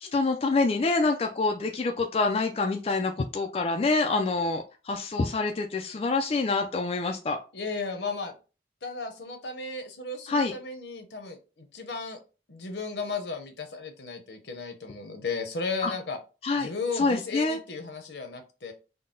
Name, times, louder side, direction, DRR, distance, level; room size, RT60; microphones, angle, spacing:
voice 1, 0.0-7.4 10.3-10.5 15.8-15.9 16.4-16.7 17.0-17.6, left 3 dB, 35° left, 4 dB, 0.3 m, -26 dB
voice 2, 7.5-8.3 8.8-12.2 12.5-16.2 16.6-18.7, left 4 dB, 75° left, 5 dB, 0.8 m, -35 dB
3.8 x 2.1 x 3.7 m, 0.32 s
head